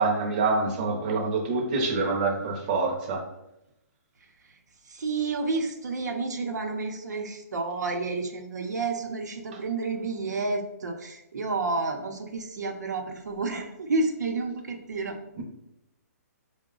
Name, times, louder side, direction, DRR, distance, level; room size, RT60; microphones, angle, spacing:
voice 1, 0.0-3.2 15.4-15.5, right 3 dB, 30° right, 0 dB, 0.7 m, -26 dB
voice 2, 4.9-15.2, right 3 dB, 90° right, 3 dB, 0.7 m, -30 dB
4.6 x 2.2 x 3.8 m, 0.85 s
hypercardioid pair, 165°, 9 cm